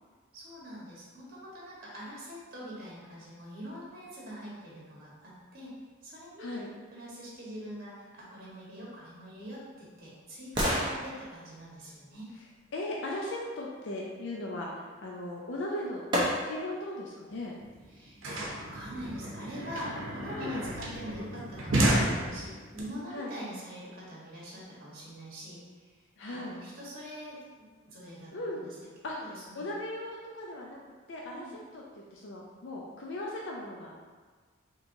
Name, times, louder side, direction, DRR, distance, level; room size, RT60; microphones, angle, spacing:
voice 1, 0.3-5.7 6.0-6.6 6.9-12.3 17.9-25.9 26.3-28.9 29.2-29.6 31.3-31.5, equal, 45° right, -6 dB, 1.2 m, -44 dB
voice 2, 6.4-6.7 12.4-12.5 12.7-16.0 16.4-17.6 20.4-20.7 23.1-23.3 26.2-26.6 28.3-28.6 29.0-30.8 31.1-34.0, left 1 dB, 60° left, -2 dB, 0.4 m, -38 dB
sound 1, 9.1-13.1 15.2-15.3 16.1-16.8 17.3-17.4, equal, 25° right, 0.6 m, -34 dB
sound 2, 17.3-17.4 17.6-22.8, right 1 dB, 75° right, 0.7 m, -31 dB
4.3 x 2.9 x 2.6 m, 1.5 s
head